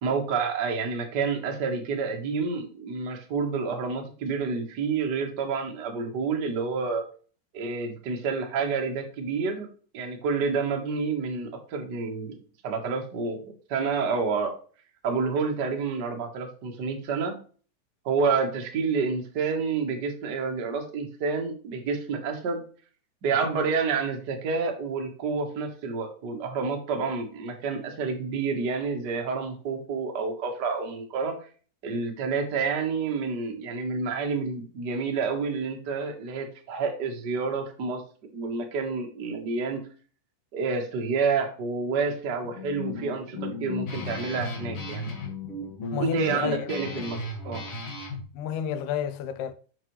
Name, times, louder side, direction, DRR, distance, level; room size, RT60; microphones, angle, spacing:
voice 1, 0.0-7.0 7.5-9.7 9.9-12.4 12.6-13.4 13.7-14.5 15.0-17.3 18.0-22.6 23.2-31.4 31.8-38.0 38.3-39.8 40.5-45.0 46.0-47.6, right 4 dB, 75° right, 0.9 m, -29 dB
Guitar, 42.4-48.2, left 3 dB, 50° left, 2.3 m, -35 dB
voice 2, 45.9-46.6 48.3-49.5, left 8 dB, 80° left, 1.9 m, -30 dB
7.9 x 5.9 x 3.1 m
omnidirectional pair, 4.0 m